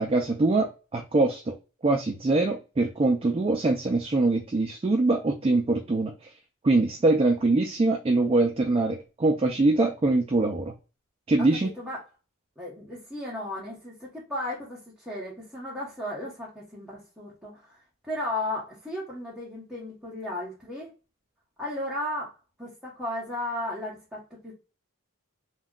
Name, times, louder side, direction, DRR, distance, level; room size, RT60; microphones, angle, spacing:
voice 1, 0.0-1.6 1.8-6.1 6.6-10.7 11.3-11.7, right 2 dB, 25° right, 2 dB, 0.3 m, -23 dB
voice 2, 12.6-17.8 18.1-20.9 21.6-22.3 22.6-24.5, left 1 dB, 5° right, -8 dB, 0.8 m, -35 dB
2.2 x 2.1 x 3.5 m, 0.31 s
head